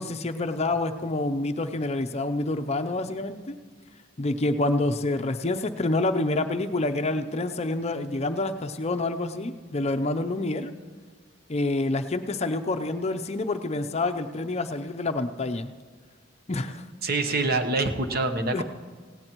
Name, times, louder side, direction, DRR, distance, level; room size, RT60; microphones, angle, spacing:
voice 1, 0.0-3.6 4.2-10.7 11.5-15.7 16.5-16.9 18.5-18.6, left 2 dB, 30° left, 8 dB, 0.6 m, -27 dB
voice 2, 17.0-18.6, right 3 dB, 50° right, 7 dB, 1.0 m, -25 dB
17.5 x 17.0 x 3.0 m, 1.5 s
head